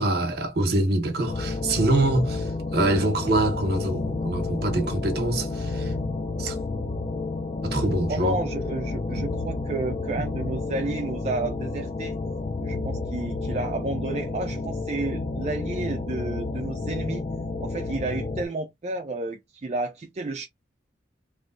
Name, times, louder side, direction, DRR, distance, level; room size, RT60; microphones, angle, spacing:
voice 1, 0.0-5.9 6.4-6.6 7.6-8.4 9.2-9.3, right 2 dB, 60° right, 1.0 m, -25 dB
sound 1, 1.3-18.5, left 3 dB, 35° left, 0.3 m, -30 dB
voice 2, 8.1-12.2 12.6-17.2 17.6-20.5, right 3 dB, 35° right, 0.4 m, -31 dB
3.2 x 2.6 x 2.5 m
head